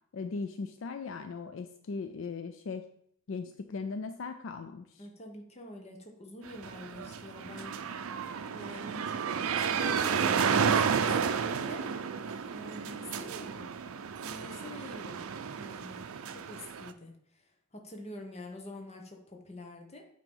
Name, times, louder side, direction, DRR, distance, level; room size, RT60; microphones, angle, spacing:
voice 1, 0.1-2.8 3.3-5.0, left 4 dB, 65° left, 8 dB, 0.4 m, -38 dB
voice 2, 5.0-7.8 8.5-11.9 12.5-13.7 14.2-15.2 15.6-16.0 16.3-20.0, left 1 dB, 30° left, 3 dB, 1.0 m, -46 dB
sound 1, 6.4-16.9, right 6 dB, 85° right, 0.5 m, -32 dB
8.8 x 3.0 x 5.3 m, 0.69 s
head